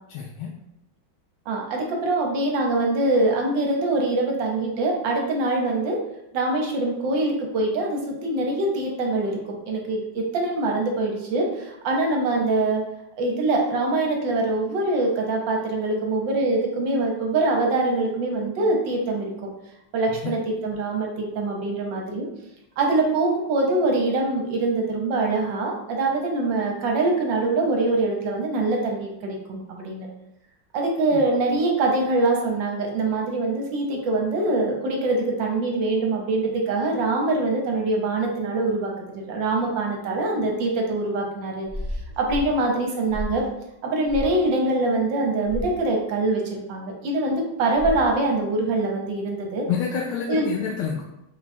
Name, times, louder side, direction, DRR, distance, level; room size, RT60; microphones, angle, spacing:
voice 1, 0.1-0.5 20.2-20.3 49.7-51.0, left 7 dB, 85° left, -1 dB, 1.4 m, -28 dB
voice 2, 1.5-6.0 6.3-12.8 13.2-19.5 19.9-22.3 22.8-30.1 30.7-41.7 42.2-43.4 43.8-49.7 50.3-50.5, right 2 dB, 70° right, 0 dB, 1.4 m, -24 dB
sound 1, 41.7-42.5 43.1-43.5 44.1-44.3 45.4-45.7 47.8-48.1, left 1 dB, 35° left, 0.7 m, -32 dB
4.2 x 2.3 x 4.1 m, 0.86 s
omnidirectional pair, 2.3 m